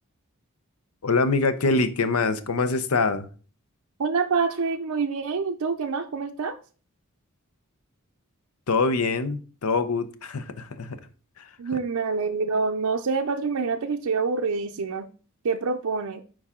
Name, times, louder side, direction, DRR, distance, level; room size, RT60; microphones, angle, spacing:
voice 1, 1.0-3.3 8.7-11.0 11.4-11.5, left 3 dB, 85° left, 0.7 m, -24 dB
voice 2, 4.0-6.6 11.6-15.1 15.4-16.2, right 4 dB, 90° right, 0.6 m, -26 dB
8.6 x 4.8 x 3.7 m
head